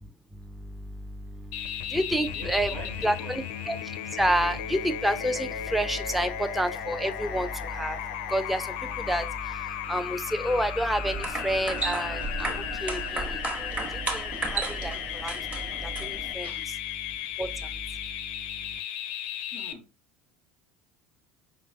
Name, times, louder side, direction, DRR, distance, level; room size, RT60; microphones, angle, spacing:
voice 1, 0.0-2.7 3.0-18.8, right 1 dB, ahead, 0.4 m, -30 dB
sound 1, 1.5-19.7, left 10 dB, 65° left, 0.4 m, -35 dB
voice 2, 2.3-3.3 16.4-16.9 19.5-19.8, right 1 dB, 80° right, 1.7 m, -44 dB
sound 2, 11.0-16.3, right 3 dB, 25° right, 1.0 m, -34 dB
Bass guitar, 11.7-15.2, right 9 dB, 60° right, 1.3 m, -49 dB
5.1 x 2.9 x 2.5 m
figure-of-eight pair, 65°, 6 cm